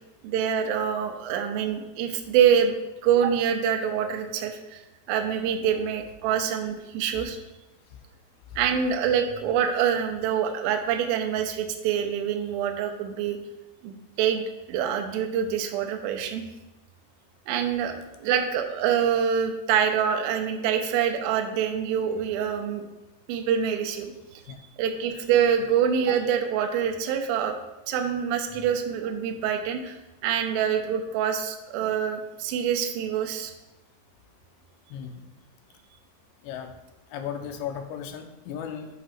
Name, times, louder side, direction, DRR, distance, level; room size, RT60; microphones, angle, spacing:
voice 1, 0.2-2.7 3.0-4.8 5.1-7.4 8.6-13.4 13.8-14.4 14.7-16.4 17.5-22.8 23.3-24.1 24.8-27.6 27.9-30.0 30.2-33.5, right 8 dB, 85° right, 5 dB, 2.0 m, -25 dB
voice 2, 37.1-38.9, left 8 dB, 85° left, 6 dB, 2.8 m, -35 dB
7.8 x 2.8 x 5.9 m, 1.0 s
omnidirectional pair, 5.0 m